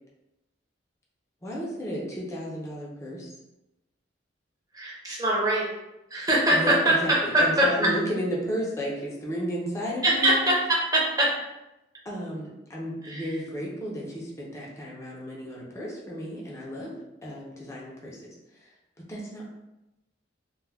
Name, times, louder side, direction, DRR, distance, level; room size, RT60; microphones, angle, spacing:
voice 1, 1.4-3.3 6.5-10.5 12.0-16.9 17.2-18.2 18.5-18.7 19.0-19.4, equal, 15° left, -4 dB, 0.5 m, -33 dB
voice 2, 4.7-5.7 6.1-6.9 7.6-7.7 10.0-11.3 13.0-13.3, right 1 dB, 20° right, -5 dB, 0.7 m, -23 dB
2.3 x 2.2 x 3.3 m, 0.93 s
head